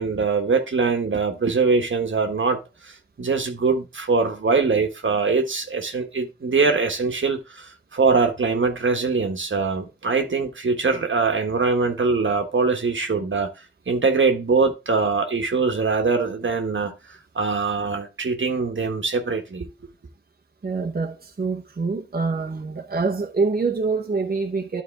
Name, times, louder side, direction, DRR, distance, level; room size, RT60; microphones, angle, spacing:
voice 1, 0.0-2.6 2.8-13.5 13.9-16.9 17.3-19.7, right 4 dB, 85° right, 1.3 m, -22 dB
voice 2, 20.6-24.8, right 4 dB, 50° right, 0.8 m, -25 dB
11.5 x 4.2 x 3.3 m
wide cardioid pair, 65°, 19 cm